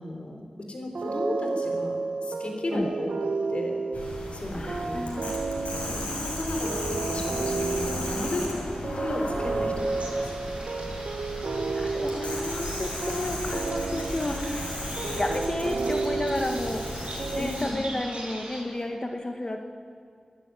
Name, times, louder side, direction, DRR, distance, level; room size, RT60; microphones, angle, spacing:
voice 1, 0.0-3.1 3.5-3.8 4.3-5.0 5.9-8.5 8.8-10.4 17.4-17.7 18.3-18.4, left 1 dB, 60° left, 3 dB, 4.0 m, -34 dB
sound 1, 0.9-18.1, right 4 dB, 80° right, 1.2 m, -32 dB
sound 2, 3.9-17.7, left 1 dB, 80° left, 6.4 m, -35 dB
voice 2, 4.5-5.4 5.9-6.1 8.6-8.8 11.7-14.7 15.0-19.6, left 2 dB, 35° left, 4 dB, 1.7 m, -32 dB
sound 3, 9.8-18.6, right 1 dB, 60° right, 7.5 m, -42 dB
26.0 x 11.5 x 9.3 m, 2.2 s
wide cardioid pair, 70°, 2 cm